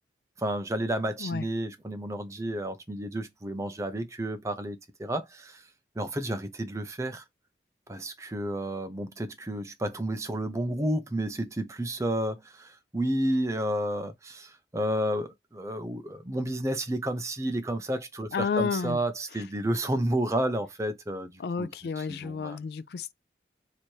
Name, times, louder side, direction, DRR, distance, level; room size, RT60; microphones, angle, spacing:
voice 1, 0.4-5.6 6.0-7.2 7.9-21.7 22.0-22.6, right 1 dB, 15° right, 0.5 m, -31 dB
voice 2, 18.3-19.0 21.4-23.1, left 5 dB, 60° left, 0.3 m, -31 dB
3.1 x 2.8 x 4.5 m
head